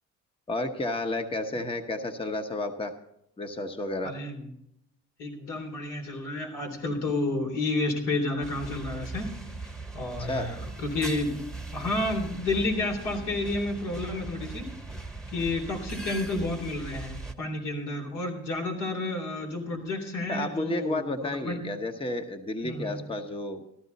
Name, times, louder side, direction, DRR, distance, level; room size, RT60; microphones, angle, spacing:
voice 1, 0.5-2.9 3.4-4.1 10.2-10.5 20.3-23.7, left 2 dB, 20° left, 7 dB, 1.0 m, -31 dB
voice 2, 4.0-4.5 5.2-9.3 9.9-11.4 11.7-14.7 15.3-21.7 22.6-23.0, left 2 dB, 80° left, 1 dB, 3.4 m, -31 dB
sound 1, 8.4-17.3, right 3 dB, ahead, 1.1 m, -39 dB
14.5 x 12.5 x 4.0 m, 0.79 s
cardioid pair, 90°, 30 cm